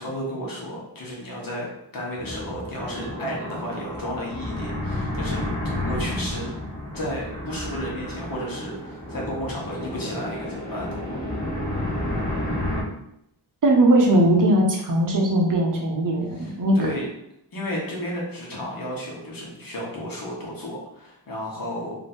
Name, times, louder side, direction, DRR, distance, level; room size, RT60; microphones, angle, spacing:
voice 1, 0.0-1.7 1.9-5.4 5.9-6.5 6.9-11.2 16.3-17.1 17.5-22.0, equal, 50° left, -4 dB, 1.3 m, -33 dB
sound 1, 2.2-12.8, left 1 dB, 20° left, 1.4 m, -31 dB
voice 2, 13.6-16.8, right 1 dB, 50° right, 0 dB, 0.8 m, -19 dB
3.2 x 2.7 x 4.2 m, 0.78 s
wide cardioid pair, 170°, 42 cm